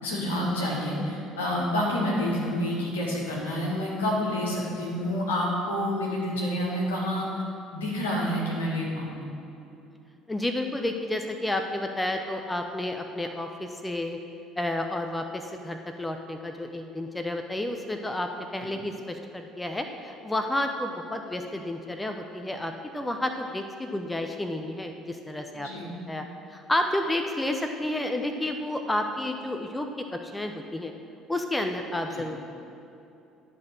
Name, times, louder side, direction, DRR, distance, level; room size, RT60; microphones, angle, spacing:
voice 1, 0.0-7.3 7.7-9.2 25.5-25.9 32.1-32.2, left 1 dB, 75° left, -4 dB, 1.8 m, -28 dB
voice 2, 10.3-14.2 14.6-30.9 31.3-32.4, left 1 dB, 10° left, 5 dB, 0.6 m, -31 dB
11.0 x 4.2 x 6.3 m, 2.7 s
figure-of-eight pair, 55°, 0 cm